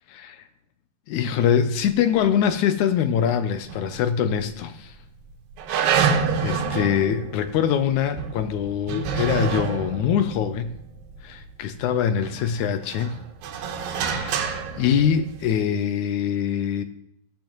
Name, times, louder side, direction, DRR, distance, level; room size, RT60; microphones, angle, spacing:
voice 1, 1.1-5.0 5.7-10.7 11.2-13.2 13.9-16.8, left 8 dB, 75° left, 1.8 m, -24 dB
sound 1, 3.7-4.5 4.8-4.9 5.6-11.7 12.2-15.6, right 6 dB, 80° right, 2.7 m, -28 dB
15.5 x 13.0 x 3.1 m
omnidirectional pair, 4.1 m